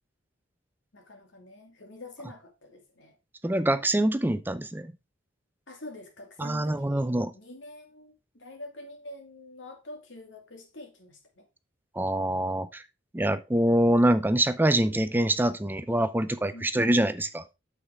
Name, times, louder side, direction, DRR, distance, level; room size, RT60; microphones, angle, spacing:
voice 1, 0.9-3.2 5.7-7.1 7.3-11.4 16.5-16.8, left 2 dB, 65° left, 2.4 m, -46 dB
voice 2, 3.4-4.9 6.4-7.3 12.0-12.8 13.1-17.4, right 1 dB, 10° right, 0.5 m, -25 dB
8.4 x 7.2 x 3.6 m
head